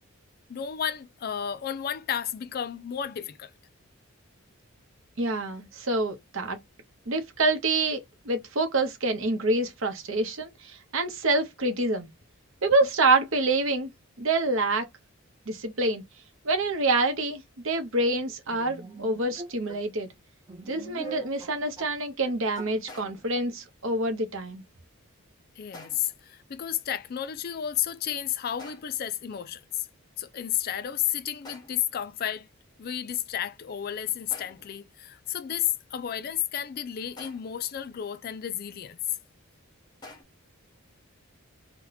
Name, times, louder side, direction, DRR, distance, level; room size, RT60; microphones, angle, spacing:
voice 1, 0.5-3.5 25.6-29.9 30.2-32.5 32.8-39.2, left 10 dB, 45° left, 0.3 m, -32 dB
voice 2, 5.2-6.6 7.1-12.1 12.6-13.9 14.2-14.9 15.5-16.0 16.4-20.1 20.6-24.6, right 2 dB, 65° right, 0.8 m, -26 dB
sound 1, 18.5-19.8 20.5-22.0 22.2-22.8 23.0-23.1, right 2 dB, 20° right, 0.5 m, -42 dB
sound 2, 22.9-23.4 25.7-26.2 28.6-29.1 31.4-32.0 34.3-34.8 37.2-37.7 40.0-40.2, left 2 dB, 20° left, 0.8 m, -48 dB
2.8 x 2.2 x 3.9 m
head